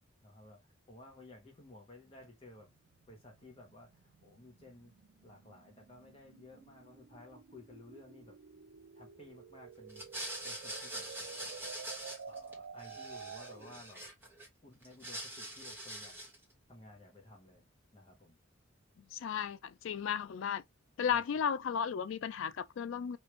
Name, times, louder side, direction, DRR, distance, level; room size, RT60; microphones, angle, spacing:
voice 1, 0.2-2.7 3.1-4.9 5.2-8.4 8.9-10.0 10.4-11.7 12.2-14.0 14.6-16.2 16.7-17.7 17.9-18.4 21.1-21.2, left 2 dB, 30° left, 0.9 m, -55 dB
sound 1, 2.6-13.8, right 6 dB, 80° right, 0.4 m, -51 dB
sound 2, 9.9-12.5 12.8-14.5 14.8-16.4, right 1 dB, 10° right, 1.3 m, -44 dB
voice 2, 19.0-20.6 21.0-23.2, left 7 dB, 65° left, 0.3 m, -34 dB
3.2 x 2.5 x 3.0 m
head